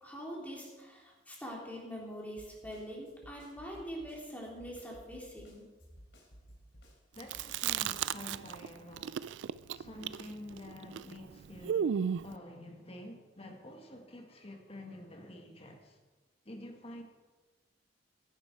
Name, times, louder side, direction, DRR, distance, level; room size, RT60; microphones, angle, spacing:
voice 1, 0.0-5.6, equal, 10° left, 3.3 m, -44 dB
Snare drum, 2.4-7.9, equal, 75° left, 3.5 m, -56 dB
voice 2, 7.1-9.4 9.7-12.0 12.2-16.0 16.4-17.0, left 1 dB, 35° left, 1.7 m, -48 dB
Chewing mastication, 7.2-8.7 8.9-12.3, right 8 dB, 75° right, 0.3 m, -34 dB
15.5 x 10.5 x 4.7 m
head